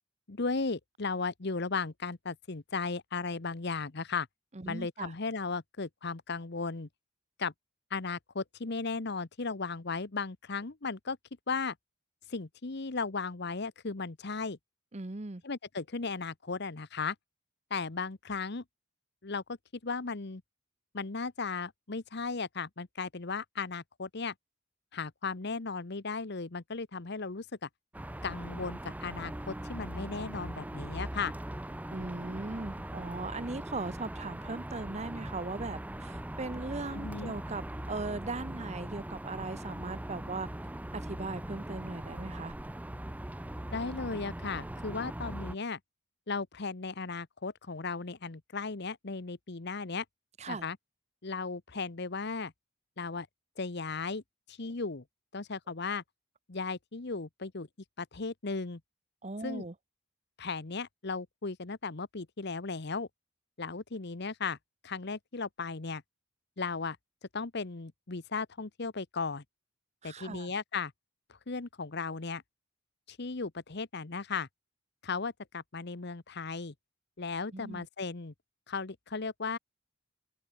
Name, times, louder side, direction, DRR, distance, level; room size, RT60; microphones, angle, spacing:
voice 1, 0.3-4.3 4.7-6.9 7.4-7.5 7.9-11.2 11.5-11.7 12.3-14.6 15.4-17.1 17.7-18.6 19.2-19.4 19.8-20.4 20.9-24.3 24.9-27.7 28.2-31.3 36.9-37.3 43.7-45.8 46.3-50.0 50.5-50.8 51.2-52.5 53.0-53.3 53.6-54.2 54.5-55.0 55.3-56.0 56.5-57.7 58.0-58.8 59.4-59.6 60.4-63.1 63.6-64.6 64.8-66.0 66.6-67.0 67.3-69.4 70.0-70.9 71.3-72.4 73.1-74.5 75.0-76.7 77.2-78.3 78.7-79.6, left 4 dB, 55° left, 1.0 m, -36 dB
voice 2, 4.5-5.1 14.9-15.4 31.9-40.5 40.9-42.5 50.4-50.6 59.2-59.7 70.0-70.5 77.5-77.9, right 3 dB, 30° right, 0.9 m, -39 dB
sound 1, 27.9-45.5, right 1 dB, 5° right, 0.5 m, -40 dB
open air
head